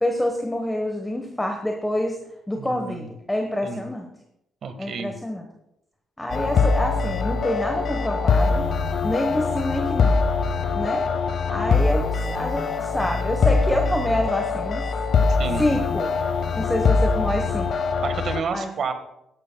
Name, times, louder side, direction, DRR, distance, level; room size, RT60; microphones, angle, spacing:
voice 1, 0.0-2.2 2.5-4.1 4.8-5.4 6.2-8.7 9.0-10.3 10.7-11.1 11.5-14.9 15.6-16.1 16.5-17.9 18.5-18.7, left 1 dB, 10° left, 3 dB, 1.2 m, -27 dB
voice 2, 2.6-3.1 3.6-3.8 4.6-5.1 15.4-15.6 18.0-18.9, right 5 dB, 60° right, 7 dB, 1.5 m, -30 dB
sound 1, 6.3-18.4, left 4 dB, 60° left, 0.9 m, -23 dB
14.0 x 11.5 x 2.3 m, 0.84 s
cardioid pair, 90°, 0 cm